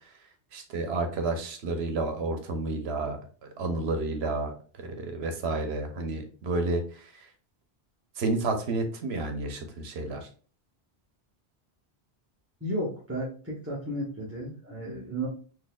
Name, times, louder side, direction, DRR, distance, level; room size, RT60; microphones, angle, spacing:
voice 1, 0.5-7.3 8.2-10.3, right 2 dB, 80° right, 6 dB, 1.0 m, -31 dB
voice 2, 12.6-15.3, right 1 dB, 15° right, -6 dB, 0.8 m, -33 dB
4.0 x 2.8 x 2.3 m, 0.40 s
omnidirectional pair, 1.1 m